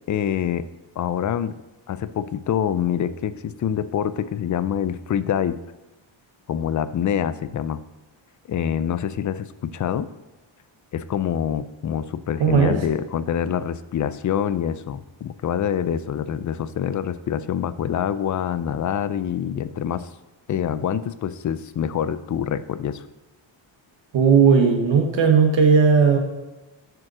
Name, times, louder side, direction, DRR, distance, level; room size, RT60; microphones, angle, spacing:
voice 1, 0.1-0.7 1.0-1.5 1.9-5.6 6.5-7.8 8.5-10.1 10.9-20.1 20.5-23.0, left 9 dB, 40° left, 14 dB, 0.4 m, -26 dB
voice 2, 12.4-12.8 24.1-26.2, right 6 dB, 65° right, 3 dB, 1.2 m, -16 dB
7.6 x 5.2 x 6.1 m, 1.0 s
cardioid pair, 100°, 49 cm